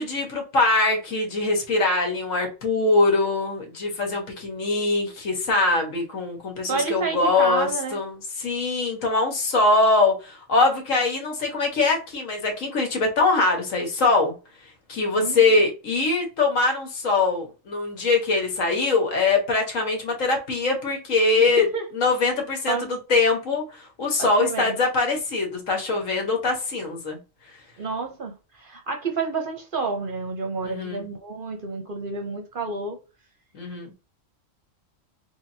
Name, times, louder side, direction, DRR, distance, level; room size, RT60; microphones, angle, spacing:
voice 1, 0.0-14.3 14.9-21.6 21.9-27.2 30.6-31.0 33.5-33.9, left 3 dB, 75° left, 1.6 m, -23 dB
voice 2, 6.7-8.0 15.1-15.6 21.4-21.9 22.7-23.0 24.2-24.8 27.8-33.0, right 3 dB, 50° right, 0.8 m, -30 dB
3.4 x 3.4 x 2.7 m
omnidirectional pair, 1.4 m